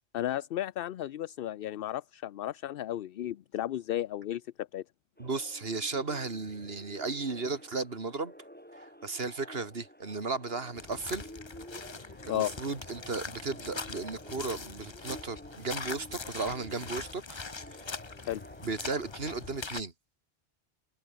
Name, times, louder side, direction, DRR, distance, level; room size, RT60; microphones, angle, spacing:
voice 1, 0.1-4.8 12.2-12.5 18.3-18.4, left 12 dB, 65° left, 0.7 m, -34 dB
sound 1, 5.2-19.7, equal, 10° left, 7.4 m, -51 dB
voice 2, 5.2-8.3 8.7-11.3 12.3-17.4 17.7-17.9 18.6-19.9, right 4 dB, 60° right, 2.6 m, -35 dB
sound 2, 10.8-19.8, left 4 dB, 25° left, 0.8 m, -42 dB
omnidirectional pair, 1.1 m